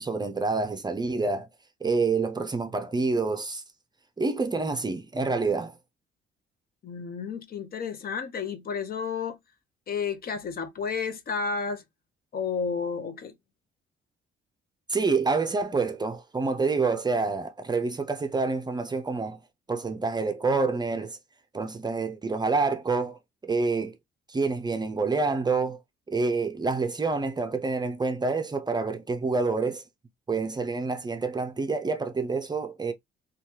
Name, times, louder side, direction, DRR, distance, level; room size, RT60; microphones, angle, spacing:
voice 1, 0.0-1.5 1.8-3.6 4.2-5.8 14.9-19.4 19.7-21.2 21.5-23.2 23.4-23.9 24.3-25.8 26.1-29.8 30.3-32.9, right 4 dB, 20° right, 0.5 m, -27 dB
voice 2, 6.8-9.4 9.9-11.8 12.3-13.3, left 5 dB, 50° left, 0.7 m, -31 dB
3.0 x 2.3 x 2.8 m
cardioid pair, 90°, 20 cm